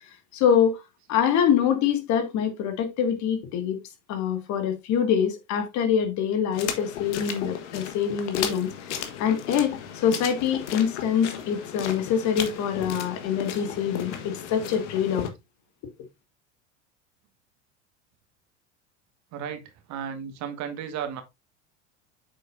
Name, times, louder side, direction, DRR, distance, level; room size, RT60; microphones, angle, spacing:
voice 1, 0.3-0.8 1.1-3.8 4.1-15.3, left 8 dB, 50° left, 2.0 m, -25 dB
sound 1, 6.5-15.3, left 8 dB, 75° left, 1.5 m, -35 dB
voice 2, 19.3-21.2, right 8 dB, 50° right, 1.7 m, -34 dB
7.7 x 6.2 x 2.6 m
hypercardioid pair, 80°, 36 cm